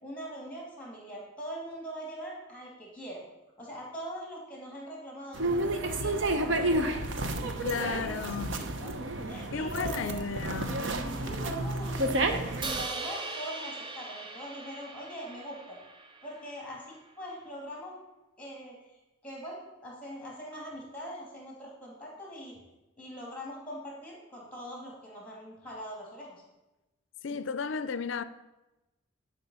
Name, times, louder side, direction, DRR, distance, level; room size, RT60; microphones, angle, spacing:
voice 1, 0.0-3.2 3.6-6.9 7.4-8.9 9.3-10.2 11.2-15.8 16.2-18.0 18.4-22.6 23.0-26.4, equal, 5° left, 2.6 m, -42 dB
sound 1, 5.3-12.8, right 1 dB, 60° right, 0.7 m, -31 dB
voice 2, 7.6-8.6 9.5-10.9 27.2-28.2, left 5 dB, 60° left, 0.4 m, -34 dB
Crash cymbal, 12.6-16.8, right 3 dB, 25° right, 0.5 m, -40 dB
11.0 x 4.9 x 5.5 m
head